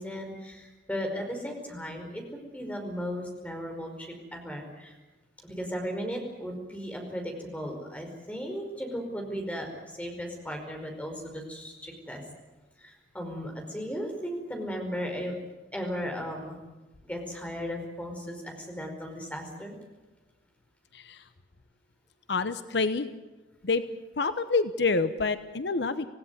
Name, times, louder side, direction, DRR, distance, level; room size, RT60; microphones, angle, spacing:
voice 1, 0.0-4.9 5.4-12.2 12.8-15.3 15.7-16.6 17.0-19.8, equal, 10° left, 2 dB, 5.1 m, -36 dB
voice 2, 20.9-21.3 22.3-23.1 23.6-23.8 24.2-26.1, left 4 dB, 70° left, 11 dB, 1.0 m, -27 dB
26.5 x 17.0 x 9.6 m, 1.1 s
head